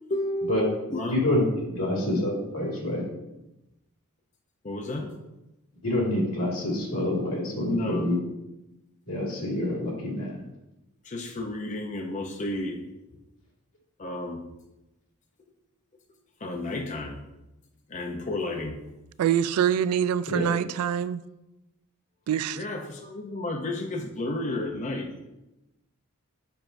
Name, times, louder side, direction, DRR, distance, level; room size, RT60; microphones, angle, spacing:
voice 1, 0.1-1.4 1.7-2.0 2.7-3.1 4.6-5.2 7.7-8.1 11.0-12.8 14.0-14.4 16.4-17.2 17.9-18.8 22.6-25.1, left 1 dB, 35° left, 0.5 m, -32 dB
voice 2, 1.1-1.4 1.8-3.0 5.8-8.2 9.1-10.3 20.3-20.5, left 1 dB, 80° left, 2.0 m, -27 dB
voice 3, 19.2-21.2 22.3-22.6, right 9 dB, 90° right, 0.3 m, -25 dB
6.8 x 5.8 x 2.6 m
head